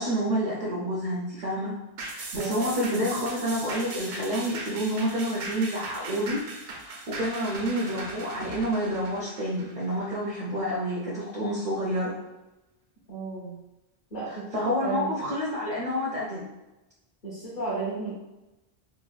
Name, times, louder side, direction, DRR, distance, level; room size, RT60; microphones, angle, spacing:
voice 1, 0.0-1.8 2.1-6.4 6.8-12.1 14.3-16.5, equal, 55° right, -4 dB, 0.6 m, -29 dB
sound 1, 2.0-10.7 11.1-11.2, right 2 dB, 85° right, 0.9 m, -39 dB
voice 2, 13.1-13.6 14.1-15.1 17.2-18.1, right 3 dB, 55° left, -8 dB, 0.9 m, -33 dB
3.2 x 2.1 x 2.4 m, 1.0 s
omnidirectional pair, 1.1 m